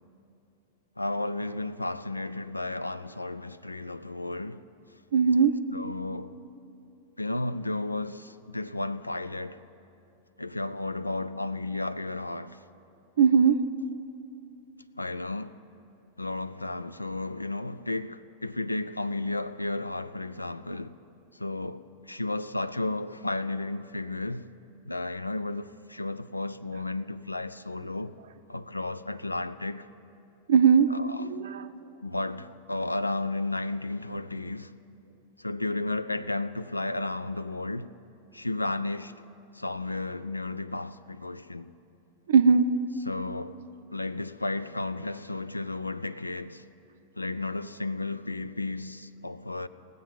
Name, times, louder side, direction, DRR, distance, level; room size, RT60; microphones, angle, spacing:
voice 1, 1.0-4.6 5.7-6.4 7.2-9.6 10.4-12.6 15.0-15.6 16.2-21.0 21.4-24.4 24.9-28.1 28.5-29.9 30.9-31.2 32.0-34.7 35.4-37.9 38.3-39.1 39.5-41.7 43.1-43.6 43.9-46.6 47.2-49.7, left 2 dB, 85° left, 0.3 m, -33 dB
voice 2, 5.1-5.6 13.2-13.7 30.5-31.7 42.3-42.7, right 6 dB, 60° right, 0.5 m, -20 dB
20.0 x 7.7 x 5.5 m
figure-of-eight pair, 90°, 0 cm